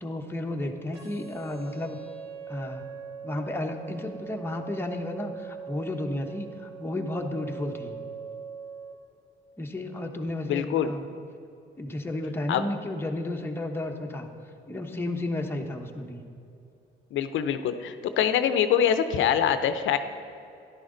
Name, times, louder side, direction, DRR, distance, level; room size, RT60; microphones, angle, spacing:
voice 1, 0.0-2.0 2.5-8.0 9.6-11.0 11.8-14.3 14.7-16.2, left 1 dB, 10° left, 2 dB, 1.1 m, -33 dB
sound 1, 0.9-8.9, right 7 dB, 55° right, 2.5 m, -41 dB
voice 2, 10.5-10.9 12.5-12.6 17.1-20.0, left 9 dB, 75° left, 10 dB, 0.7 m, -24 dB
13.5 x 11.5 x 3.9 m, 2.7 s
cardioid pair, 90°, 20 cm